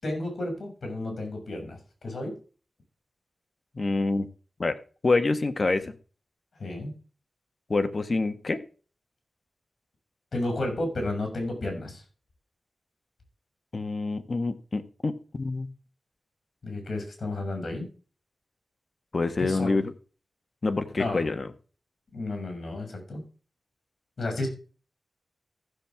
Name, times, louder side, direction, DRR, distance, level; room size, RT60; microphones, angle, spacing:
voice 1, 0.0-2.4 6.6-6.9 10.3-12.0 16.6-17.9 19.4-19.8 21.0-21.3 22.1-23.2 24.2-24.5, left 2 dB, 65° left, 4 dB, 6.2 m, -32 dB
voice 2, 3.7-4.3 4.6-5.9 7.7-8.6 13.7-15.7 19.1-19.9 20.6-21.5, left 3 dB, 45° left, 9 dB, 1.4 m, -27 dB
15.0 x 7.4 x 3.5 m, 0.37 s
wide cardioid pair, 75°, 0 cm